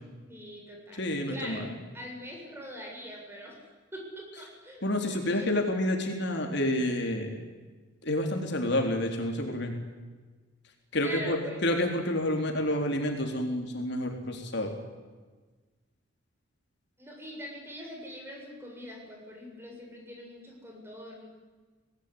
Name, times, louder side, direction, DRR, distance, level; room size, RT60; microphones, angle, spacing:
voice 1, 0.3-1.7 1.9-3.6 3.9-5.5 11.0-11.6 17.0-21.2, equal, 10° right, 0 dB, 7.5 m, -43 dB
voice 2, 1.0-1.8 4.8-7.5 8.0-9.7 10.9-14.7, left 1 dB, 60° left, 3 dB, 3.7 m, -29 dB
24.5 x 19.0 x 10.0 m, 1.4 s
head